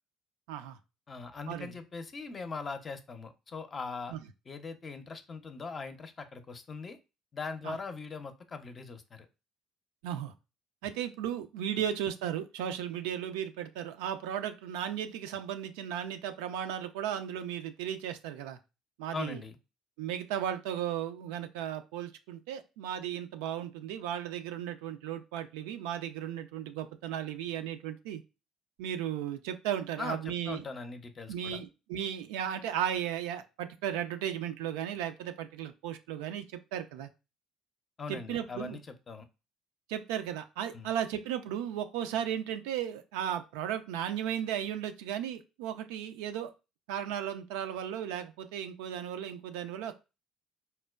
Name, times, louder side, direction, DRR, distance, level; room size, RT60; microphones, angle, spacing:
voice 1, 1.1-4.1 4.5-7.0 7.3-9.3 19.1-19.6 30.0-31.6 38.0-38.8 39.1-39.3 40.7-40.9, left 4 dB, 35° left, 8 dB, 0.5 m, -40 dB
voice 2, 10.0-10.3 10.8-18.6 19.0-19.4 20.0-28.2 28.8-30.6 31.3-37.1 38.1-38.8 39.9-46.5 46.9-49.9, right 10 dB, 75° right, 8 dB, 0.3 m, -35 dB
4.2 x 2.1 x 2.3 m, 0.28 s
hypercardioid pair, 55°, 0 cm